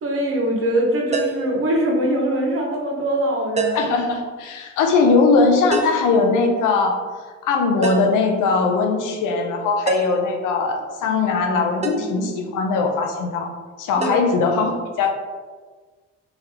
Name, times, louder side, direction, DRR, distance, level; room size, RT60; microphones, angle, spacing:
voice 1, 0.0-3.9 11.9-12.1 14.0-14.2, right 1 dB, 45° right, 0 dB, 0.9 m, -22 dB
sound 1, 1.1-1.5 3.6-4.0 5.7-6.1 7.8-8.2 9.9-10.3 11.8-12.1 14.0-14.2, right 3 dB, 25° right, 0.5 m, -25 dB
voice 2, 3.7-7.0 7.4-13.5 13.8-15.1, left 4 dB, 90° left, 3 dB, 0.7 m, -20 dB
3.9 x 3.4 x 2.8 m, 1.4 s
cardioid pair, 90°, 30 cm